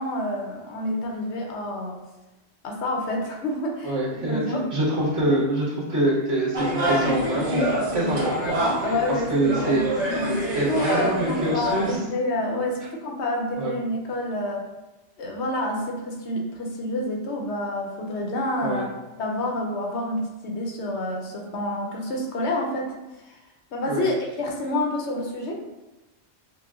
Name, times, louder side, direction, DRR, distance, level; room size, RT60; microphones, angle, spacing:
voice 1, 0.0-2.0 2.6-4.6 5.2-5.4 8.8-9.9 10.1-14.7 15.2-18.9 19.2-22.9 23.3-23.4 23.7-25.6, left 1 dB, 70° left, 1 dB, 0.9 m, -28 dB
voice 2, 3.8-8.8 9.3-9.8 10.5-12.0 13.6-13.7 18.6-18.9 23.9-24.1, right 1 dB, 60° right, -8 dB, 1.6 m, -25 dB
sound 1, 6.5-12.0, right 1 dB, 85° right, 1.3 m, -26 dB
6.0 x 2.1 x 2.4 m, 1.1 s
omnidirectional pair, 1.2 m